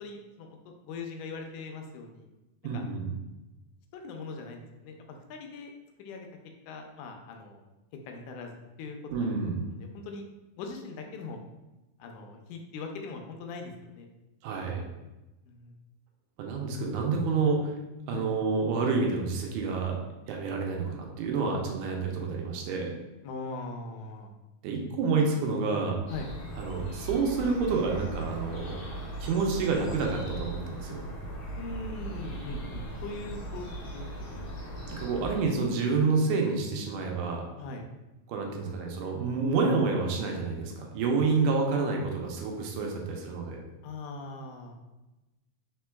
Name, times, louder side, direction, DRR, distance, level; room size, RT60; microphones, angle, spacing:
voice 1, 0.0-2.3 2.7-2.8 3.9-5.7 6.0-6.3 6.7-7.7 8.1-9.3 9.7-10.3 10.6-11.4 12.0-14.1 15.5-15.7 18.1-18.3 23.2-24.3 26.1-26.3 31.6-34.5 37.6-37.9 43.8-44.8, left 3 dB, 85° left, 3 dB, 2.1 m, -41 dB
voice 2, 2.6-3.1 9.1-9.7 14.4-14.9 16.4-17.7 18.1-20.0 20.3-23.0 24.6-26.0 26.6-28.8 29.2-31.0 34.9-37.5 38.3-43.6, right 4 dB, 80° right, 1 dB, 2.2 m, -28 dB
sound 1, 26.1-35.4, right 1 dB, 65° left, 1.3 m, -39 dB
4.4 x 4.4 x 2.2 m, 1.0 s
omnidirectional pair, 3.6 m